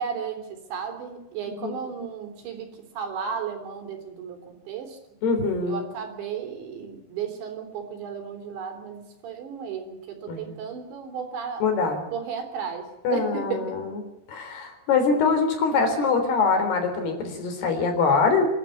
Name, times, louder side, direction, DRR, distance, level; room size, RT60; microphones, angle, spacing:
voice 1, 0.0-2.7 3.0-5.0 5.7-11.6 12.1-13.8, right 7 dB, 85° right, 5 dB, 5.9 m, -34 dB
voice 2, 5.2-5.9 10.3-10.6 11.6-12.0 13.0-14.0 14.3-18.5, left 4 dB, 65° left, 5 dB, 5.6 m, -23 dB
26.5 x 12.5 x 9.2 m, 0.93 s
omnidirectional pair, 5.0 m